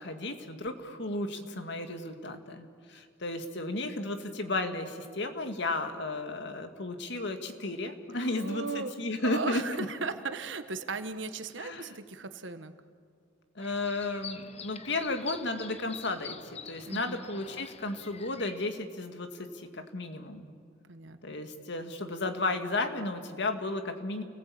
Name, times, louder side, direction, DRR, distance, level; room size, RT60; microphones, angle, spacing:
voice 1, 0.0-9.6 11.6-11.9 13.6-16.4 16.7-20.5 21.2-24.2, left 2 dB, 65° left, 7 dB, 2.1 m, -34 dB
voice 2, 8.1-8.9 9.2-12.7 16.8-17.2 20.9-21.2, right 4 dB, 70° right, 9 dB, 1.4 m, -37 dB
sound 1, 13.6-18.7, left 6 dB, 35° left, 0.9 m, -46 dB
29.5 x 19.0 x 8.6 m, 2.2 s
head